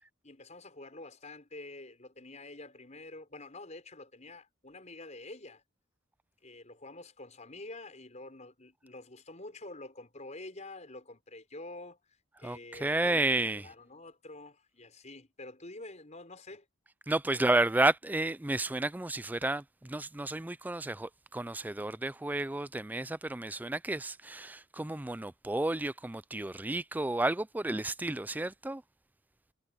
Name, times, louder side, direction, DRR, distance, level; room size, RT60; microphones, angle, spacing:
voice 1, 0.2-5.6 6.4-12.0 12.4-16.7 17.3-17.5, left 2 dB, 35° left, 5.1 m, -47 dB
voice 2, 12.4-13.7 17.1-28.8, right 2 dB, 10° right, 0.4 m, -31 dB
head